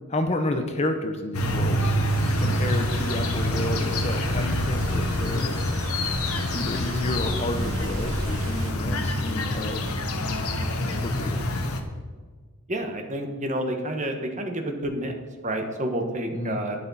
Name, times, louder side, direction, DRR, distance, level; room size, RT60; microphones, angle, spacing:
voice 1, 0.1-1.9 2.4-5.5 6.5-9.9 10.8-11.4 16.3-16.6, left 1 dB, 30° left, 6 dB, 0.8 m, -30 dB
sound 1, 1.3-11.8, left 1 dB, 75° left, 1.2 m, -26 dB
sound 2, 2.1-8.7, right 1 dB, 65° right, 1.5 m, -37 dB
voice 2, 12.7-15.1 15.4-16.8, right 1 dB, 35° right, 4 dB, 1.3 m, -29 dB
11.5 x 10.0 x 4.2 m, 1.5 s
head